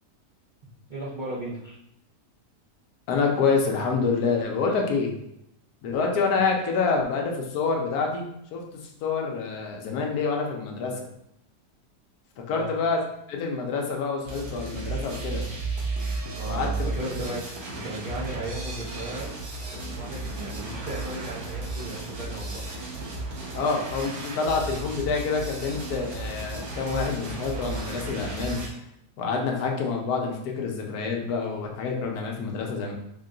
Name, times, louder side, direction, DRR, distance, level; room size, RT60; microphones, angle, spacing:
voice 1, 0.9-1.8 6.3-6.4 12.5-12.7 16.3-17.4 17.7-19.3 19.7-22.6, right 1 dB, 50° right, -9 dB, 0.5 m, -36 dB
voice 2, 3.1-5.1 5.8-8.6 9.0-11.1 12.4-13.0 13.3-15.4 16.4-16.9 23.5-28.6 29.2-32.9, left 4 dB, 70° left, 1 dB, 1.1 m, -27 dB
sound 1, 14.2-28.7, right 3 dB, 70° right, 1.5 m, -34 dB
3.7 x 2.2 x 3.7 m, 0.78 s
omnidirectional pair, 1.8 m